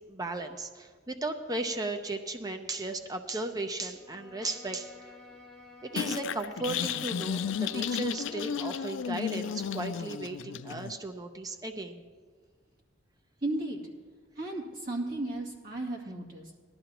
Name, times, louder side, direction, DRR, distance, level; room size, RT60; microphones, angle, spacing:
voice 1, 0.0-5.1 5.8-12.0, right 2 dB, 20° right, 6 dB, 0.6 m, -36 dB
Bowed string instrument, 3.9-8.8, left 3 dB, ahead, 1.4 m, -52 dB
sound 1, 6.0-11.0, left 7 dB, 70° left, 0.3 m, -33 dB
voice 2, 13.4-13.8 14.4-16.5, right 2 dB, 50° right, -2 dB, 2.4 m, -34 dB
18.0 x 12.5 x 3.0 m, 1.5 s
head